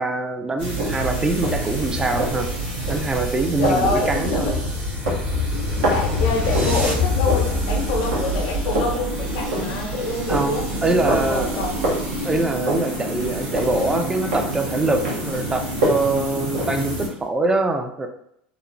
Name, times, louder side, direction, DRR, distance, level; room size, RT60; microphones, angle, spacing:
voice 1, 0.0-2.5 2.9-4.7 10.3-11.6 12.2-18.1, right 2 dB, 15° right, 6 dB, 0.4 m, -24 dB
sound 1, 0.6-17.1, right 1 dB, 65° right, 1.5 m, -29 dB
sound 2, 0.6-17.2, right 1 dB, 80° right, 1.1 m, -28 dB
sound 3, 3.5-9.6, left 4 dB, 40° right, 1.1 m, -26 dB
voice 2, 3.6-4.6 5.9-12.0, left 2 dB, 65° left, 1 dB, 0.7 m, -26 dB
2.9 x 2.1 x 2.6 m, 0.72 s
hypercardioid pair, 85°, 5 cm